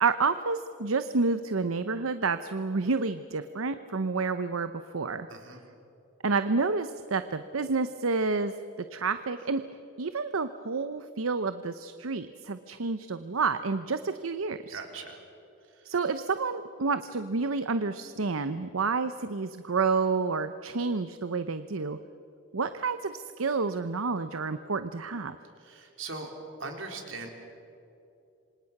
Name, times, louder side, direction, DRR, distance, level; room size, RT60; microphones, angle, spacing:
voice 1, 0.0-5.3 6.2-8.5 8.9-9.6 10.0-14.8 15.8-22.0 22.5-25.4, right 4 dB, 85° right, 11 dB, 0.8 m, -29 dB
voice 2, 5.3-5.6 14.7-15.2 15.7-15.9 25.6-26.3 26.6-27.3, right 3 dB, 70° right, 3 dB, 3.9 m, -40 dB
27.0 x 25.5 x 6.0 m, 2.9 s
head